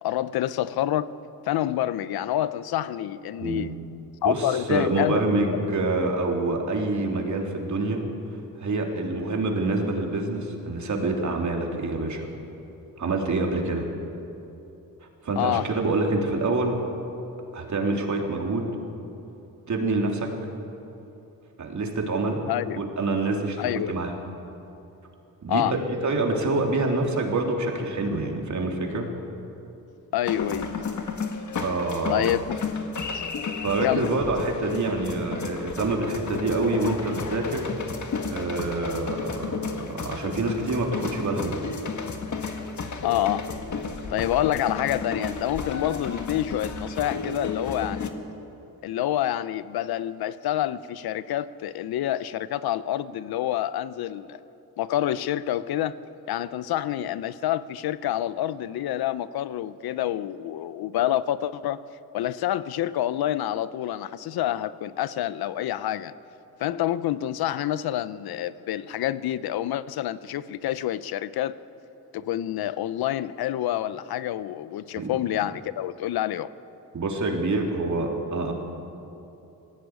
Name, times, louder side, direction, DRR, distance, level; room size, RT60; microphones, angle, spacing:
voice 1, 0.0-1.1 1.5-3.8 4.2-5.2 15.4-15.7 22.5-22.8 23.6-24.0 25.5-25.8 30.1-30.7 32.1-32.5 33.1-33.2 33.8-34.1 43.0-43.5 44.1-48.1 48.8-54.4 54.8-56.0 56.3-61.8 62.1-66.1 66.6-71.6 72.1-76.5, left 12 dB, 85° left, 0.7 m, -27 dB
voice 2, 3.4-3.8 4.2-8.0 8.6-12.3 13.0-13.9 15.2-16.8 17.5-18.7 19.7-20.3 21.6-22.4 22.7-24.1 25.4-29.1 31.6-32.3 33.6-37.7 38.3-41.6 75.0-75.2 76.9-78.5, right 2 dB, 50° right, 3.5 m, -26 dB
sound 1, 30.2-48.1, left 4 dB, 50° left, 2.0 m, -33 dB
19.5 x 15.5 x 9.6 m
cardioid pair, 80°, 36 cm